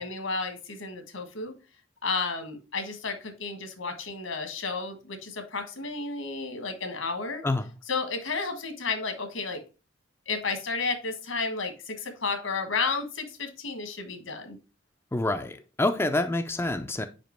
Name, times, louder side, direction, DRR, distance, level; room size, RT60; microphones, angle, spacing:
voice 1, 0.0-1.5 2.0-7.4 7.9-9.6 10.3-14.6, left 4 dB, 80° left, 1.5 m, -32 dB
voice 2, 15.1-17.1, left 2 dB, 10° left, 0.4 m, -27 dB
5.1 x 5.0 x 4.4 m
head